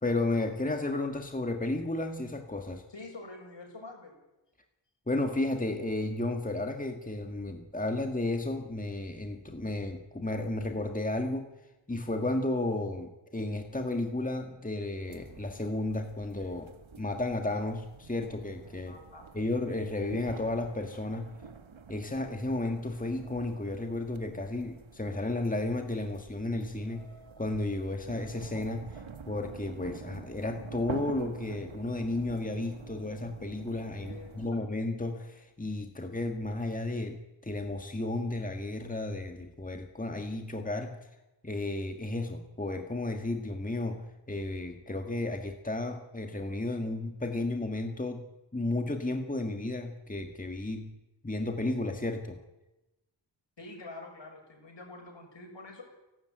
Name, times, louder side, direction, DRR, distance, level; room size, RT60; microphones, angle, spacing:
voice 1, 0.0-2.8 5.1-11.5 11.9-16.7 17.0-19.0 19.3-21.4 21.9-27.1 27.4-41.1 41.4-48.2 48.5-50.9 51.2-52.4, left 2 dB, 15° left, 5 dB, 1.8 m, -33 dB
voice 2, 2.9-4.2 18.9-19.3 34.0-34.4 53.6-55.8, left 2 dB, 65° left, 3 dB, 6.6 m, -46 dB
sound 1, 15.1-34.5, right 5 dB, 75° right, 1.6 m, -48 dB
30.0 x 12.5 x 9.2 m, 1.0 s
wide cardioid pair, 90°, 47 cm